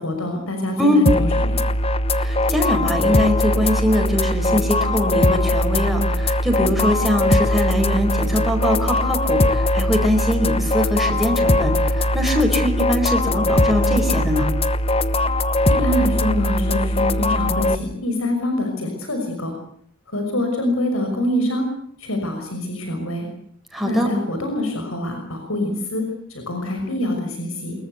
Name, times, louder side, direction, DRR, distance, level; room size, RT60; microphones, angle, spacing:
voice 1, 0.0-1.6 15.7-19.5 20.1-21.7 22.0-23.3 23.8-27.7, left 1 dB, 75° left, 4 dB, 6.0 m, -25 dB
sound 1, 1.1-17.8, left 1 dB, 25° left, 1.0 m, -20 dB
voice 2, 2.2-14.5 23.7-24.1, equal, ahead, 1 dB, 4.7 m, -22 dB
24.0 x 22.0 x 8.2 m, 0.63 s
head